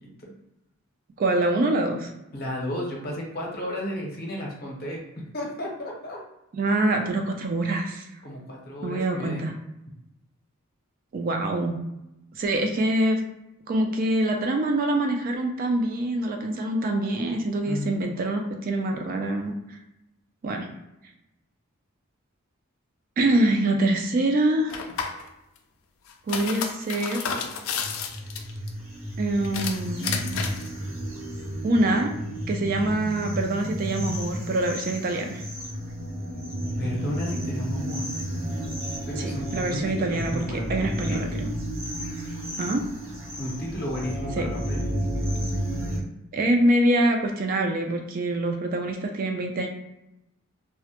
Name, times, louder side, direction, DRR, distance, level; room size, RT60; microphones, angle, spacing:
voice 1, 1.2-2.1 6.5-8.1 8.8-9.5 11.1-11.8 12.3-13.2 13.7-19.8 20.4-20.7 23.2-24.8 26.3-27.3 29.2-30.5 31.6-32.1 32.5-35.4 39.2-41.5 42.6-42.8 44.4-44.5 46.3-49.7, right 1 dB, 40° right, 3 dB, 0.3 m, -25 dB
voice 2, 2.3-6.2 8.2-9.5 17.6-18.1 36.8-38.1 39.1-41.5 43.4-44.9, left 1 dB, 45° left, -1 dB, 0.7 m, -33 dB
sound 1, 24.7-25.2 26.1-28.7 29.4-30.7, left 6 dB, 75° left, 0.3 m, -31 dB
sound 2, 27.8-46.0, equal, 75° right, 0.8 m, -32 dB
2.1 x 2.0 x 2.8 m, 0.89 s
head